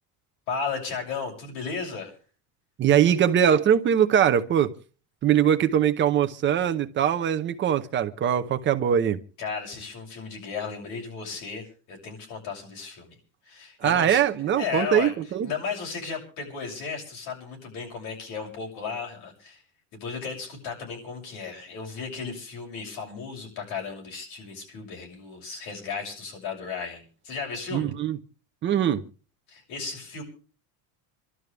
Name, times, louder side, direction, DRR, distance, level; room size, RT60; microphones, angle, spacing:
voice 1, 0.5-2.1 9.4-13.2 13.4-14.2 14.6-15.1 15.4-19.6 19.9-27.9 29.5-30.2, left 5 dB, 55° left, 7.0 m, -35 dB
voice 2, 2.8-4.7 5.2-9.2 13.8-15.5 27.7-28.2 28.6-29.0, right 9 dB, 25° right, 0.7 m, -22 dB
28.0 x 12.5 x 3.4 m
cardioid pair, 170°, 45 cm